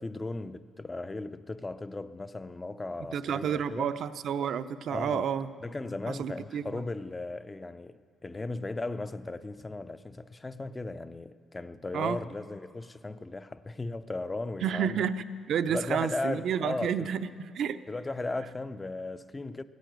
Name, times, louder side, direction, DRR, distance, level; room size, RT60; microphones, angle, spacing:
voice 1, 0.0-3.9 4.9-5.3 5.6-15.0 15.7-17.1 17.9-19.6, left 2 dB, 20° left, 0.5 m, -36 dB
voice 2, 3.1-5.5 6.1-6.8 11.9-12.2 14.6-17.8, right 8 dB, 70° right, 0.6 m, -30 dB
15.0 x 9.3 x 9.2 m
cardioid pair, 90°, 0 cm